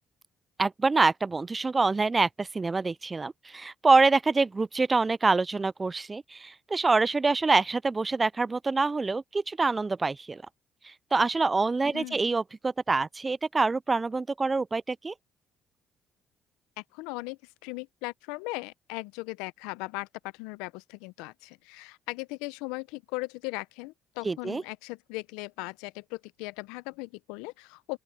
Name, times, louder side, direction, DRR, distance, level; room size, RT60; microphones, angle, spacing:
voice 1, 0.6-10.4 10.8-15.1 24.2-24.6, right 3 dB, 25° right, 0.4 m, -26 dB
voice 2, 11.9-12.3 16.8-28.0, left 24 dB, 85° left, 0.6 m, -38 dB
open air
supercardioid pair, 60°, 0 cm